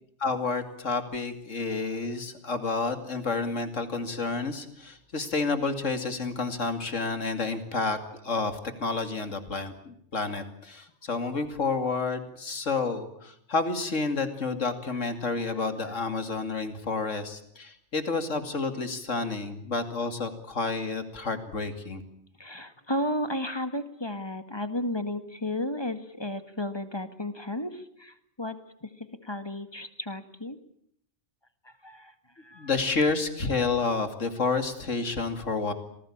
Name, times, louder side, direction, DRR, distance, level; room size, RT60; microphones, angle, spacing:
voice 1, 0.2-8.0 8.2-22.0 32.5-35.7, left 4 dB, 80° left, 8 dB, 2.9 m, -30 dB
voice 2, 22.4-27.7 28.0-28.6 29.3-30.6 31.8-32.1 32.5-32.7, left 1 dB, 20° left, 10 dB, 1.8 m, -33 dB
27.0 x 19.0 x 8.8 m, 0.69 s
omnidirectional pair, 1.3 m